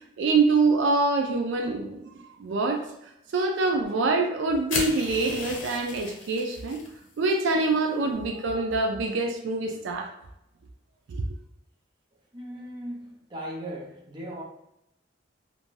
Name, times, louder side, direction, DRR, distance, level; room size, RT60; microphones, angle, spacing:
voice 1, 0.2-2.9 3.3-6.8 7.2-10.1 11.1-11.2, right 3 dB, 70° right, 0.4 m, -25 dB
sound 1, 4.7-6.9, left 3 dB, 80° left, 0.6 m, -34 dB
voice 2, 12.3-14.4, equal, 25° right, 0.6 m, -38 dB
2.5 x 2.1 x 3.1 m
head